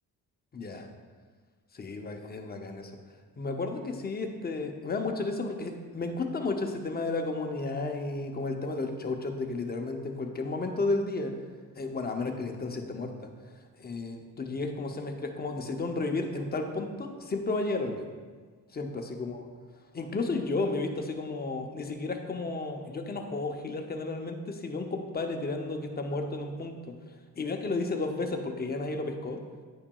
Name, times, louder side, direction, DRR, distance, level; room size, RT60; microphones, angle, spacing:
voice 1, 0.5-0.9 1.7-2.9 3.4-11.3 11.8-13.3 13.8-18.0 18.7-19.4 19.9-26.8 27.4-29.4, left 3 dB, 25° left, 4 dB, 0.5 m, -33 dB
9.6 x 5.8 x 2.3 m, 1.5 s
wide cardioid pair, 140°, 36 cm